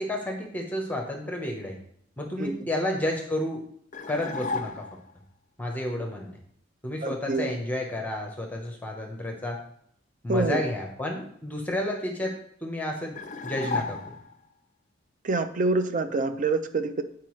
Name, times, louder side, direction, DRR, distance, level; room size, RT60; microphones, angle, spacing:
voice 1, 0.0-1.8 2.2-3.6 4.1-4.9 5.6-6.4 6.8-9.6 10.2-14.0, left 1 dB, 10° left, 1 dB, 0.9 m, -31 dB
voice 2, 2.4-2.7 7.0-7.5 10.3-10.6 15.2-17.0, right 3 dB, 45° right, 9 dB, 0.5 m, -26 dB
sound 1, 3.9-5.1 13.2-14.5, left 4 dB, 40° left, 0.4 m, -33 dB
8.9 x 4.7 x 3.1 m, 0.67 s
head